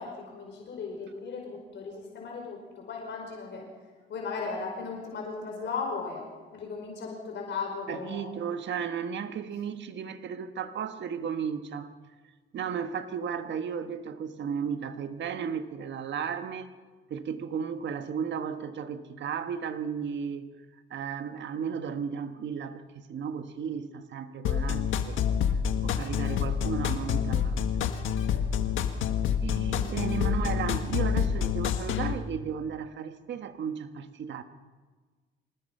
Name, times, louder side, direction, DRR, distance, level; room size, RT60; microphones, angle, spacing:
voice 1, 0.0-3.6 4.1-6.2 6.5-8.3, left 4 dB, 65° left, 5.0 m, -36 dB
voice 2, 7.9-11.9 12.5-16.7 17.1-20.5 20.9-25.2 25.8-27.9 29.4-34.4, right 7 dB, 65° right, 1.6 m, -34 dB
sound 1, 24.4-32.1, left 8 dB, 80° left, 1.6 m, -27 dB
25.5 x 19.5 x 5.6 m
cardioid pair, 90°, 20 cm